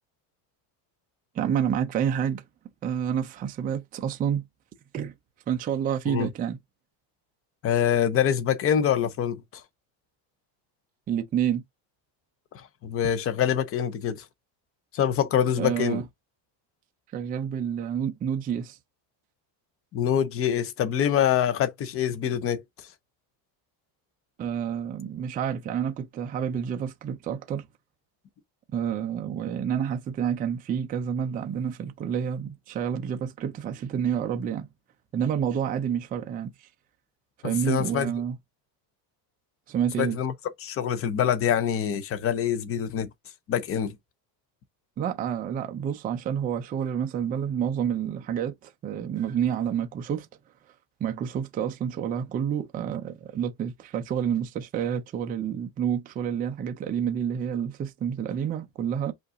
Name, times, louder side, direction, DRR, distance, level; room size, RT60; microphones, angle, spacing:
voice 1, 1.4-2.4 2.8-4.4 4.9-5.1 5.5-6.6 11.1-11.6 15.6-16.0 17.1-18.8 24.4-27.7 28.7-34.7 35.1-36.5 37.4-38.4 39.7-40.2 45.0-50.3 51.0-59.1, right 8 dB, 20° right, 0.4 m, -29 dB
voice 2, 7.6-9.4 12.5-14.2 14.9-16.0 19.9-22.6 37.4-38.1 40.0-40.3 40.6-43.1 43.5-44.0, left 9 dB, 30° left, 0.6 m, -25 dB
5.2 x 2.5 x 3.7 m
cardioid pair, 160°, 48 cm